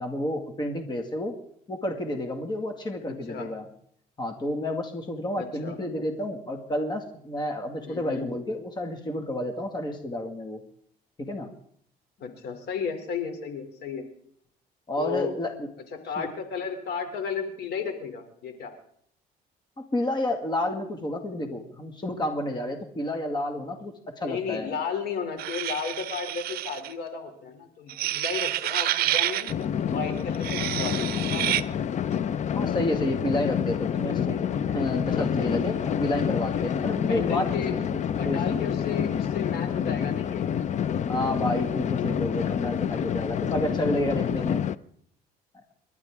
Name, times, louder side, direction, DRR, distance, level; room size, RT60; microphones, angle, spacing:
voice 1, 0.0-1.3 1.7-3.6 4.2-10.6 11.2-11.5 14.9-15.7 16.2-16.3 19.8-24.7 32.6-37.8 38.2-38.6 41.1-44.6 45.5-45.6, left 1 dB, 25° left, 4 dB, 2.0 m, -30 dB
voice 2, 3.1-3.5 5.4-5.8 7.9-8.3 12.2-14.1 15.0-15.4 15.9-18.7 24.2-29.5 29.9-31.8 36.5-36.7 37.1-37.8 38.2-40.4, left 6 dB, 70° left, 6 dB, 3.2 m, -34 dB
sound 1, 25.4-26.9 27.9-29.5 30.3-31.6, right 14 dB, 65° right, 0.6 m, -28 dB
sound 2, 29.5-44.7, left 8 dB, 45° left, 0.6 m, -28 dB
29.0 x 12.0 x 3.7 m, 0.67 s
cardioid pair, 110°, 17 cm